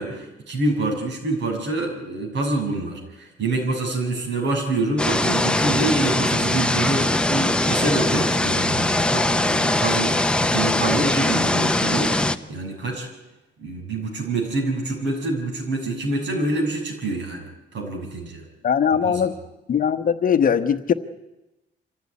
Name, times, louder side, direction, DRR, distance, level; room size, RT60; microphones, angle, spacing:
voice 1, 0.0-8.8 9.1-12.1 12.5-13.1 13.6-17.4 17.7-18.4 19.0-19.3, right 2 dB, 70° right, 2 dB, 6.5 m, -26 dB
sound 1, 5.0-12.4, left 1 dB, 5° left, 0.7 m, -21 dB
voice 2, 18.6-19.3 19.7-20.9, left 7 dB, 45° left, 10 dB, 1.1 m, -20 dB
25.0 x 15.5 x 9.7 m, 1.0 s
cardioid pair, 145°, 19 cm